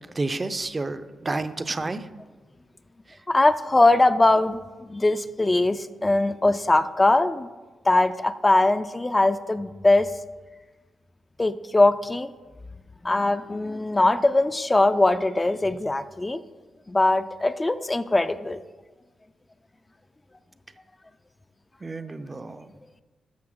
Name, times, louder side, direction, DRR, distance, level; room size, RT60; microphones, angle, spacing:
voice 1, 0.2-2.1 21.8-22.7, right 3 dB, 30° right, 11 dB, 0.6 m, -30 dB
voice 2, 3.3-7.5 7.8-10.1 11.4-12.3 13.0-16.4 16.9-18.6, left 2 dB, 20° left, 11 dB, 0.4 m, -21 dB
13.5 x 5.7 x 3.8 m, 1.3 s
cardioid pair, 65°, 0 cm